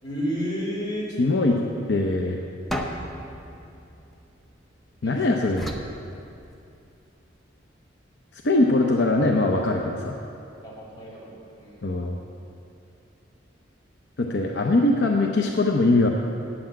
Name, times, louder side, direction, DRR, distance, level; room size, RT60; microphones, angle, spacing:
voice 1, 0.0-1.1 1.4-1.6 5.0-5.4 10.6-11.9, equal, 25° left, -6 dB, 3.3 m, -32 dB
voice 2, 1.2-1.6 1.9-2.4 5.0-5.7 8.3-10.2 11.8-12.2 14.2-16.1, left 2 dB, 65° left, 1 dB, 0.7 m, -21 dB
sound 1, 2.7-4.9 5.6-6.9, equal, ahead, 0.7 m, -35 dB
8.5 x 7.8 x 8.8 m, 2.6 s
head